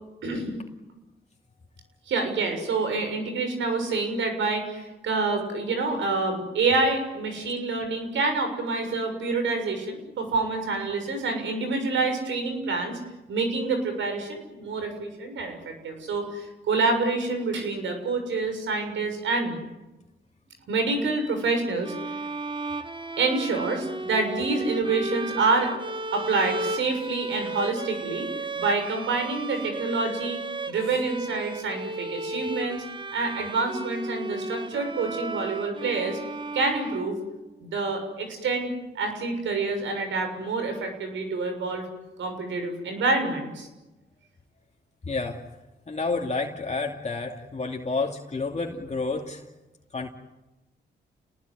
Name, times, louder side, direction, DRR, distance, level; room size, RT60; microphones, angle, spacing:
voice 1, 0.2-0.5 2.1-13.0 13.3-19.5 20.7-21.9 23.2-25.7 26.1-28.3 28.6-30.4 30.7-32.8 33.1-36.2 36.5-37.2 37.6-41.9 42.2-43.7, right 3 dB, 85° right, 6 dB, 6.9 m, -27 dB
sound 1, 21.8-37.5, right 3 dB, 25° right, 1.4 m, -34 dB
voice 2, 45.0-45.4 45.9-49.4 49.9-50.1, left 3 dB, 35° left, 1 dB, 2.6 m, -30 dB
29.5 x 20.0 x 9.7 m, 1.0 s
cardioid pair, 70°, 19 cm